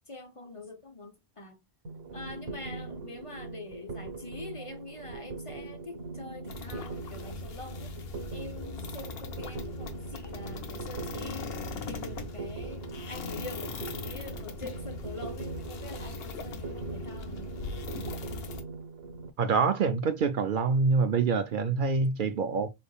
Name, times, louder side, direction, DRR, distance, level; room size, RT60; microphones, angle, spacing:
voice 1, 0.1-1.6 2.1-8.0 8.3-11.6 11.9-17.5, left 2 dB, 35° left, 0.8 m, -44 dB
sound 1, 1.8-19.3, right 3 dB, 80° right, 1.1 m, -41 dB
sound 2, 6.5-18.6, left 4 dB, 70° left, 1.0 m, -40 dB
voice 2, 19.4-22.7, right 4 dB, 60° right, 0.6 m, -26 dB
4.9 x 3.5 x 2.3 m
omnidirectional pair, 1.0 m